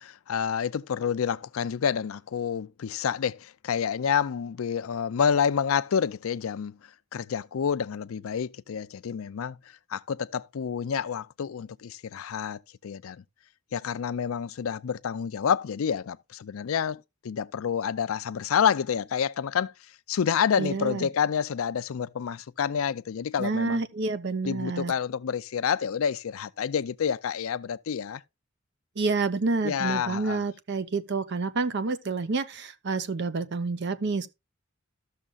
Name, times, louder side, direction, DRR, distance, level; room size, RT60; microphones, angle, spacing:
voice 1, 0.0-6.8 7.1-9.6 9.9-13.2 13.7-19.7 20.1-23.8 24.4-28.2 29.6-30.4, left 7 dB, 80° left, 0.4 m, -28 dB
voice 2, 20.6-21.1 23.4-24.9 29.0-34.3, right 3 dB, 55° right, 0.7 m, -28 dB
13.5 x 6.4 x 2.4 m
head